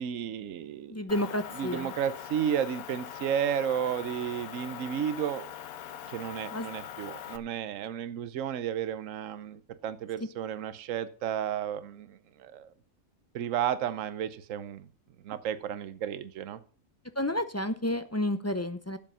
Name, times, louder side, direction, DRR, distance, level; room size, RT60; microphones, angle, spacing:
voice 1, 0.0-1.1 1.5-5.5 6.1-12.7 13.3-14.9 15.2-16.6, right 9 dB, 70° right, 13 dB, 1.1 m, -33 dB
voice 2, 0.9-1.9 6.5-6.7 17.2-19.0, left 1 dB, 20° left, 10 dB, 0.4 m, -30 dB
Motor vehicle (road) / Engine, 1.1-7.4, left 9 dB, 80° left, 1.2 m, -42 dB
12.0 x 7.6 x 5.5 m, 0.41 s
omnidirectional pair, 1.5 m